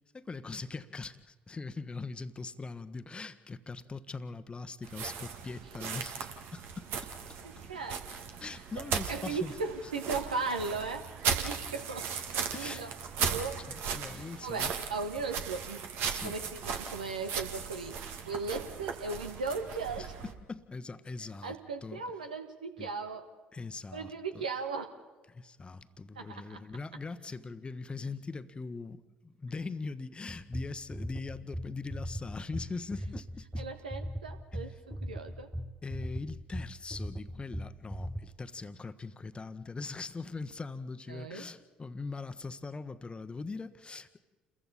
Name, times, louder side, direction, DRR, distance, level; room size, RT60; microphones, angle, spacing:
voice 1, 0.0-7.4 8.4-9.5 12.5-12.8 13.2-13.4 13.9-14.7 16.0-16.4 20.0-22.0 22.8-22.9 23.5-24.4 25.3-33.6 35.8-44.2, left 4 dB, 25° left, 12 dB, 1.3 m, -41 dB
sound 1, 4.8-20.3, right 6 dB, 55° right, 1.9 m, -37 dB
voice 2, 7.7-8.0 8.4-12.9 13.3-13.6 14.1-15.8 16.2-20.1 21.4-23.3 23.9-25.0 26.1-26.6 33.6-35.5 41.1-41.5, right 4 dB, 80° right, 6 dB, 1.5 m, -37 dB
sound 2, 30.3-38.2, equal, ahead, 1.0 m, -39 dB
29.5 x 22.0 x 4.2 m, 1.3 s
figure-of-eight pair, 55°, 4 cm